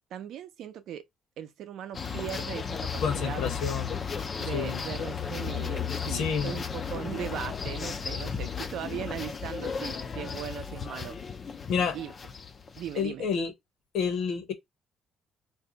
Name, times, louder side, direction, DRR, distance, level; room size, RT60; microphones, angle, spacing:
voice 1, 0.1-1.0 1.4-3.5 4.4-11.2 11.9-12.1 12.8-13.3, right 10 dB, 65° right, 0.5 m, -38 dB
sound 1, 1.9-13.0, left 6 dB, 30° left, 0.3 m, -34 dB
voice 2, 3.0-4.0 4.5-4.8 6.1-6.5 11.7-12.0 13.0-13.5 13.9-14.5, left 6 dB, 70° left, 0.9 m, -29 dB
2.6 x 2.2 x 3.7 m
cardioid pair, 165°, 0 cm